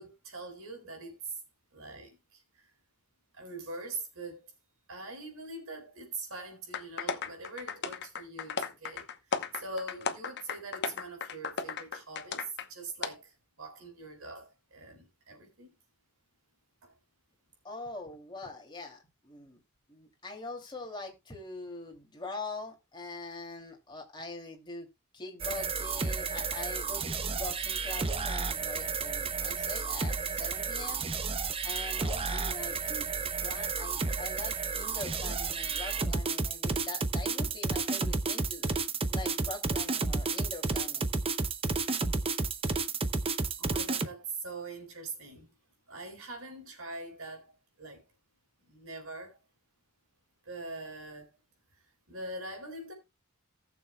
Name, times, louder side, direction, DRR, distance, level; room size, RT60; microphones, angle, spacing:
voice 1, 0.0-1.4 1.7-2.7 3.3-4.5 4.9-15.8 16.8-16.9 43.6-45.5 45.9-48.0 48.6-49.4 50.4-51.3 51.7-52.9, right 2 dB, 70° right, 4.2 m, -43 dB
sound 1, 6.7-12.7 13.0-13.1, left 5 dB, 50° left, 0.9 m, -35 dB
voice 2, 17.6-19.6 19.9-24.9 25.1-31.0 31.6-33.1 33.4-38.8 39.1-41.1, left 2 dB, 20° left, 2.7 m, -43 dB
sound 2, 25.4-44.1, right 4 dB, 25° right, 0.7 m, -32 dB
18.5 x 6.9 x 2.3 m
head